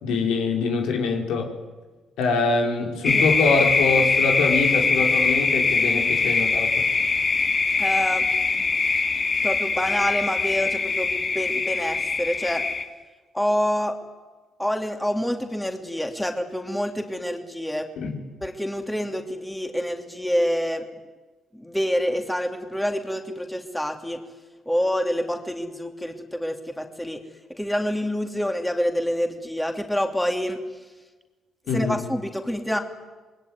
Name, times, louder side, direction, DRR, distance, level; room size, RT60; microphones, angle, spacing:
voice 1, 0.0-1.5 2.2-6.7 18.0-18.2 31.7-32.0, left 4 dB, 90° left, 2 dB, 4.6 m, -24 dB
sound 1, 3.0-12.8, left 4 dB, 40° left, 2.6 m, -22 dB
voice 2, 7.8-8.3 8.6-8.8 9.4-12.7 13.3-14.0 14.6-17.9 18.4-20.8 21.5-24.2 24.7-27.2 27.6-30.6 31.7-32.8, equal, 5° left, 4 dB, 3.0 m, -27 dB
27.0 x 21.0 x 9.6 m, 1.3 s
cardioid pair, 90°, 0 cm